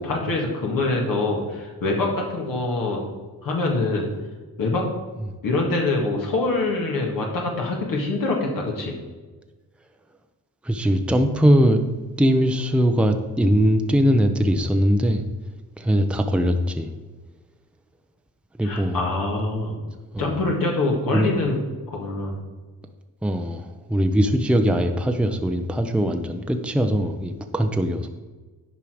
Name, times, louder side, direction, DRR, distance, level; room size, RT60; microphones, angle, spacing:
voice 1, 0.0-3.0 3.4-4.1 4.6-4.9 5.4-8.9 18.6-19.8 20.2-21.6 21.9-22.4, left 2 dB, 65° left, -1 dB, 1.9 m, -24 dB
voice 2, 10.6-11.8 12.2-15.2 15.8-16.9 18.6-19.0 20.1-20.3 21.1-21.3 23.2-28.1, equal, 5° right, 5 dB, 0.7 m, -21 dB
10.5 x 4.7 x 5.0 m, 1.3 s
cardioid pair, 70°, 36 cm